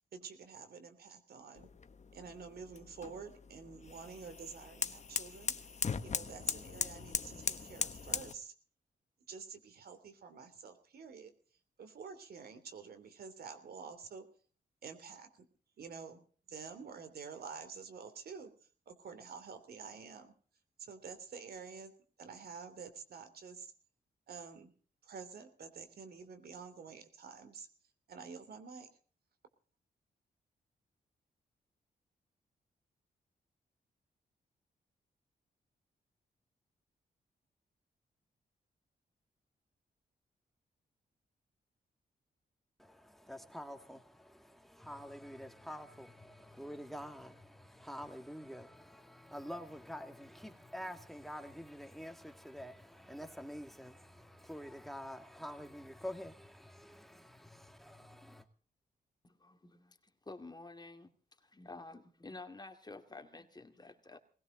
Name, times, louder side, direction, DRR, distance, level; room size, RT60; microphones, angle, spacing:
voice 1, 0.1-1.7 2.1-5.5 6.0-8.5 9.3-11.3 11.8-14.3 14.8-15.5 15.8-16.2 16.5-18.5 18.9-20.3 20.8-23.7 24.3-24.7 25.0-27.7 28.1-28.9, right 5 dB, 70° right, 3.2 m, -49 dB
sound 1, 1.6-8.3, left 5 dB, 45° left, 1.2 m, -39 dB
voice 2, 42.8-58.5, equal, ahead, 2.2 m, -47 dB
voice 3, 59.2-60.0 60.3-61.1 61.4-64.2, left 3 dB, 25° left, 2.4 m, -50 dB
19.5 x 17.5 x 3.9 m
cardioid pair, 70°, 17 cm